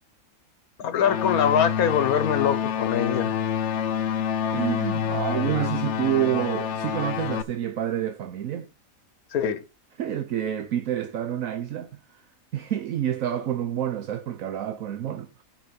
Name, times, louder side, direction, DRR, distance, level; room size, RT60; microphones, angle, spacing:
voice 1, 0.8-3.4 9.3-9.6, left 8 dB, 80° left, 1.4 m, -23 dB
sound 1, 1.0-7.4, left 8 dB, 60° left, 0.9 m, -27 dB
voice 2, 4.5-8.7 10.0-12.2 12.5-15.4, right 11 dB, 70° right, 1.2 m, -28 dB
9.0 x 5.2 x 6.8 m
omnidirectional pair, 1.5 m